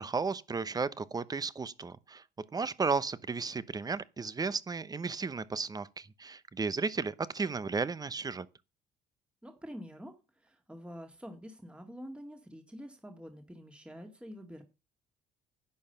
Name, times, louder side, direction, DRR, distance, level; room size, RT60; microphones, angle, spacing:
voice 1, 0.0-2.2 2.5-8.5, right 4 dB, 20° right, 0.9 m, -34 dB
voice 2, 9.4-14.6, equal, 5° right, 2.0 m, -47 dB
11.0 x 9.0 x 5.7 m
cardioid pair, 110°, 17 cm